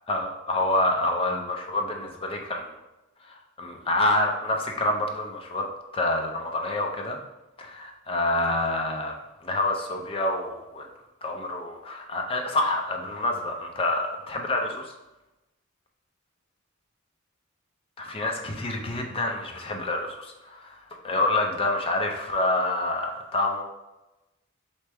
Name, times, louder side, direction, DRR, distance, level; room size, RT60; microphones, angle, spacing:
voice 1, 0.1-2.7 3.2-7.2 7.6-9.1 9.4-10.9 11.2-14.9 18.0-23.6, left 2 dB, 25° left, 2 dB, 0.5 m, -27 dB
4.2 x 3.3 x 3.4 m, 0.99 s
head